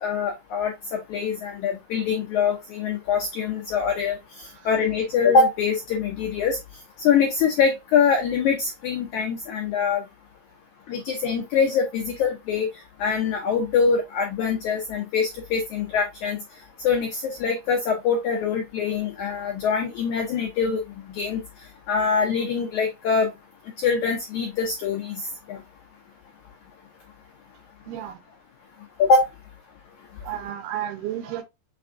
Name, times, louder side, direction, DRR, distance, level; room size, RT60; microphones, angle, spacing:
voice 1, 0.0-4.2 4.6-6.6 7.0-10.0 10.9-12.7 13.0-16.4 16.8-20.8 21.1-21.4 21.9-23.3 23.8-25.2 25.5-25.6 29.0-29.3, left 5 dB, 90° left, 1.6 m, -23 dB
voice 2, 27.9-28.2 30.2-31.4, right 11 dB, 80° right, 2.5 m, -32 dB
5.9 x 3.4 x 2.6 m
omnidirectional pair, 4.6 m